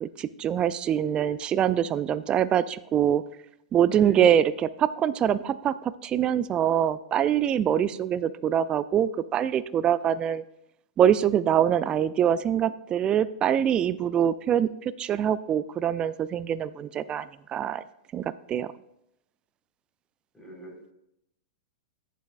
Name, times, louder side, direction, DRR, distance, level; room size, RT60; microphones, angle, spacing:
voice 1, 0.0-3.2 3.7-10.4 11.0-17.8 18.1-18.7, right 9 dB, 25° right, 16 dB, 0.4 m, -24 dB
voice 2, 3.9-4.4 20.3-20.9, right 1 dB, 10° left, -2 dB, 4.2 m, -47 dB
18.0 x 7.5 x 2.5 m, 0.80 s
figure-of-eight pair, 100°, 4 cm